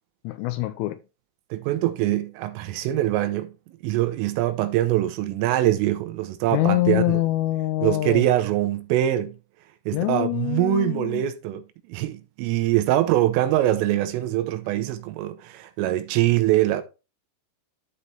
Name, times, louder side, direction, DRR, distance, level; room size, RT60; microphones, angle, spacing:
voice 1, 0.2-1.0 6.5-8.2 9.9-11.2, left 16 dB, 85° left, 3.0 m, -24 dB
voice 2, 1.5-7.2 7.8-9.4 9.9-11.6 11.9-16.8, right 14 dB, 90° right, 3.5 m, -23 dB
12.5 x 4.3 x 3.3 m
omnidirectional pair, 5.9 m